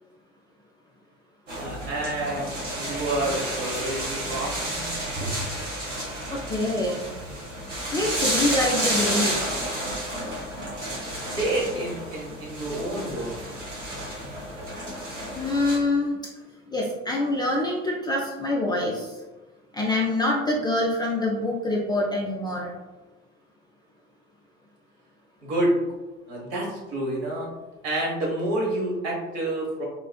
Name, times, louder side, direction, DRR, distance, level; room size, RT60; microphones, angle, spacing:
sound 1, 1.5-15.8, right 1 dB, 90° right, 0.9 m, -31 dB
voice 1, 1.6-4.5 5.2-5.3 11.3-13.3 25.4-25.7 26.3-27.5 27.8-29.8, right 1 dB, 60° right, -2 dB, 1.1 m, -28 dB
voice 2, 6.3-7.1 7.9-9.5 15.3-16.1 16.7-19.1 19.7-22.7, left 2 dB, 15° left, -3 dB, 0.3 m, -25 dB
3.6 x 2.3 x 2.2 m, 1.1 s
figure-of-eight pair, 65°, 36 cm